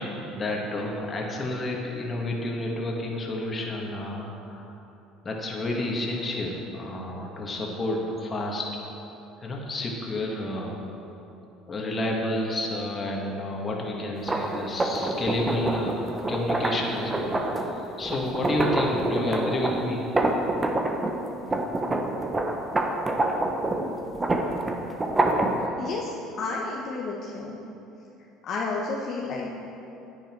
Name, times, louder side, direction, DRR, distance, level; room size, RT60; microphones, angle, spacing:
voice 1, 0.0-4.6 5.2-8.8 9.4-10.7 11.7-16.0 16.3-20.1, left 1 dB, 30° left, -1 dB, 2.0 m, -30 dB
sound 1, 14.2-21.2 21.5-25.7, right 2 dB, 20° right, 1.1 m, -26 dB
voice 2, 25.8-27.6 28.5-29.5, left 3 dB, 55° left, -3 dB, 1.1 m, -31 dB
9.9 x 9.5 x 4.6 m, 2.9 s
supercardioid pair, 85°, 0 cm